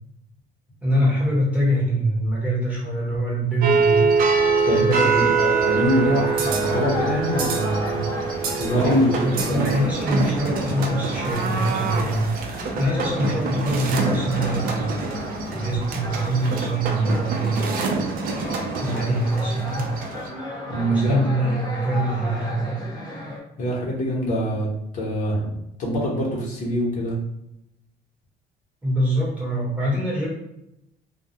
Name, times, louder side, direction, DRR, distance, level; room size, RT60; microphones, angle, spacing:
voice 1, 0.8-4.1 4.6-5.3 8.7-12.3 12.7-14.9 15.5-17.8 18.8-19.9 20.9-22.7 28.8-30.3, right 1 dB, 10° right, -6 dB, 1.0 m, -24 dB
sound 1, 3.6-20.3, right 5 dB, 60° right, 0.5 m, -25 dB
voice 2, 4.6-8.0 8.6-9.6 20.7-21.6 23.6-24.7 24.9-27.2, equal, 50° left, -4 dB, 0.9 m, -24 dB
sound 2, 5.6-23.4, left 1 dB, 25° left, 0.8 m, -34 dB
2.2 x 2.1 x 2.8 m, 0.83 s
cardioid pair, 110°, 17 cm